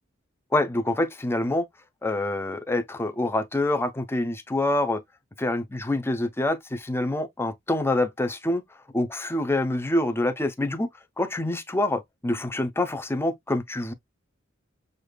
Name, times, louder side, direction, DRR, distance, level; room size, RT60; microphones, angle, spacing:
voice 1, 0.5-1.7 2.0-5.0 5.4-8.6 8.9-10.9 11.2-13.9, left 1 dB, 10° left, 0.5 m, -26 dB
6.6 x 2.5 x 2.2 m
head